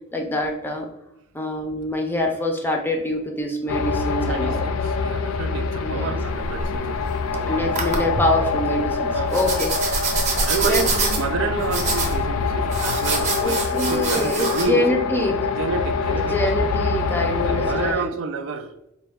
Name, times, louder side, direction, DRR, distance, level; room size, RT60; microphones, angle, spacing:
voice 1, 0.1-0.9 1.3-4.6 5.8-6.2 7.5-9.7 10.3-11.2 13.4-15.4 16.1-18.1, left 1 dB, 10° left, 0.5 m, -25 dB
sound 1, 3.7-17.9, left 4 dB, 85° left, 0.3 m, -25 dB
voice 2, 4.2-7.6 9.1-9.6 10.4-15.3 15.6-16.7 17.4-18.8, right 5 dB, 65° right, 0.3 m, -29 dB
sound 2, 6.2-7.3 7.7-8.2 9.3-14.6, right 3 dB, 35° right, 0.7 m, -25 dB
4.1 x 2.2 x 3.4 m
head